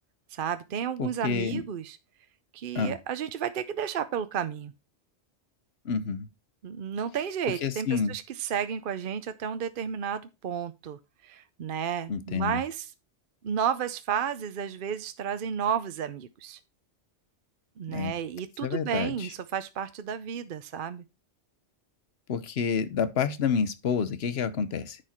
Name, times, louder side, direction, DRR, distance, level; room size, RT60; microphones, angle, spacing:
voice 1, 0.3-2.0 2.5-4.7 6.6-12.9 13.4-16.6 17.8-21.0, right 8 dB, 55° right, 0.8 m, -32 dB
voice 2, 1.0-1.6 2.7-2.9 5.8-6.3 7.6-8.1 12.1-12.6 17.9-18.1 18.6-19.3 22.3-25.0, left 6 dB, 65° left, 1.1 m, -29 dB
9.8 x 5.1 x 4.3 m
omnidirectional pair, 1.2 m